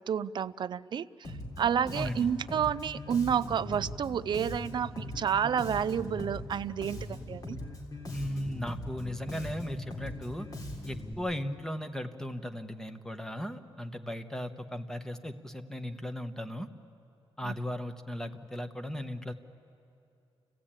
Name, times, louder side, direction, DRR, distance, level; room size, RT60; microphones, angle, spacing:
voice 1, 0.0-7.6 17.4-17.5, right 8 dB, 50° right, 15 dB, 0.4 m, -30 dB
Bass guitar, 1.2-11.1, left 1 dB, 40° left, 3.2 m, -40 dB
voice 2, 1.9-2.3 8.1-10.5 10.9-16.7 17.4-19.3, left 1 dB, 5° left, 7 dB, 1.0 m, -37 dB
29.0 x 15.5 x 8.8 m, 2.7 s
wide cardioid pair, 145°, 10 cm